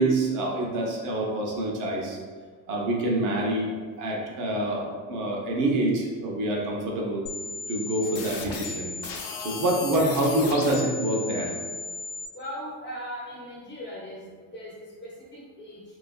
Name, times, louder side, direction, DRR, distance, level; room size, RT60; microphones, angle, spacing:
voice 1, 0.0-2.2 2.7-7.3 7.7-8.9 9.4-11.5, right 1 dB, 50° right, -1 dB, 0.6 m, -26 dB
sound 1, 7.3-12.3, left 4 dB, 80° left, 0.6 m, -35 dB
voice 2, 12.3-15.8, equal, 30° left, -4 dB, 0.4 m, -39 dB
2.8 x 2.4 x 2.3 m, 1.5 s
cardioid pair, 150°, 41 cm